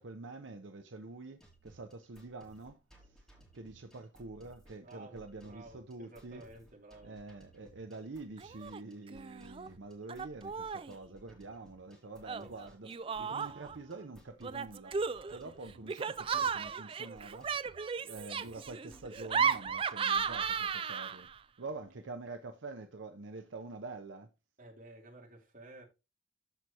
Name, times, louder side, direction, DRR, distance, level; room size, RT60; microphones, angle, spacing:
voice 1, 0.0-3.3 3.5-6.4 7.0-12.9 13.2-15.0 15.3-21.3 21.6-24.3, right 3 dB, 75° right, 0.7 m, -46 dB
sound 1, 1.4-20.9, right 1 dB, ahead, 2.8 m, -61 dB
voice 2, 4.8-7.2 12.4-12.5 13.1-13.2 22.0-22.1 24.6-25.8, right 2 dB, 45° right, 2.8 m, -53 dB
Laughter, 8.4-8.8 9.1-9.7 10.1-10.9 12.2-13.8 14.4-21.4, right 6 dB, 30° right, 0.3 m, -35 dB
14.0 x 4.7 x 2.9 m
head